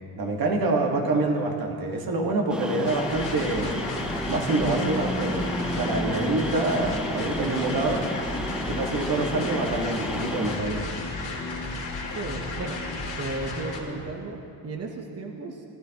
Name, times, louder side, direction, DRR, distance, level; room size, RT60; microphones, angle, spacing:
voice 1, 0.1-3.8 4.3-5.4 5.8-8.1 8.7-10.9, right 2 dB, 50° right, 2 dB, 1.7 m, -26 dB
sound 1, 2.5-10.6, equal, ahead, 0.5 m, -32 dB
sound 2, 2.8-13.8, left 3 dB, 65° left, 3.1 m, -33 dB
voice 2, 4.4-5.1 6.1-6.4 12.1-12.8 13.2-15.6, right 3 dB, 30° right, 2 dB, 1.0 m, -35 dB
18.5 x 12.0 x 3.0 m, 2.6 s
cardioid pair, 105°, 47 cm